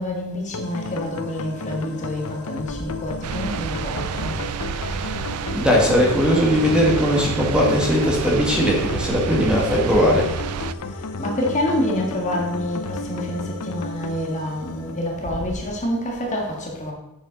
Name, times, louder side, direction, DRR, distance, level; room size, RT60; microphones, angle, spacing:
voice 1, 0.0-4.5 11.2-16.9, left 1 dB, 35° left, 0 dB, 1.7 m, -27 dB
sound 1, 0.5-15.6, left 3 dB, 85° left, 0.6 m, -33 dB
sound 2, 3.2-10.7, right 7 dB, 90° right, 0.4 m, -29 dB
voice 2, 5.5-10.3, equal, 5° right, -3 dB, 1.6 m, -19 dB
7.6 x 7.2 x 3.9 m, 0.96 s
head